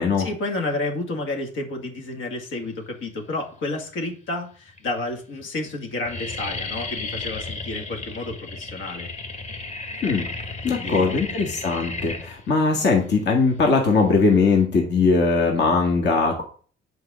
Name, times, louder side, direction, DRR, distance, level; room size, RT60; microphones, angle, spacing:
voice 1, 0.2-9.1 10.7-11.4, left 2 dB, 80° left, 2 dB, 2.2 m, -31 dB
sound 1, 3.4-4.0 4.7-4.8 5.1-5.4 5.7-14.6, left 3 dB, 35° left, 1.6 m, -34 dB
voice 2, 10.6-16.4, left 4 dB, 60° left, 1 dB, 1.9 m, -20 dB
7.9 x 4.7 x 6.2 m, 0.43 s
cardioid pair, 90°, 20 cm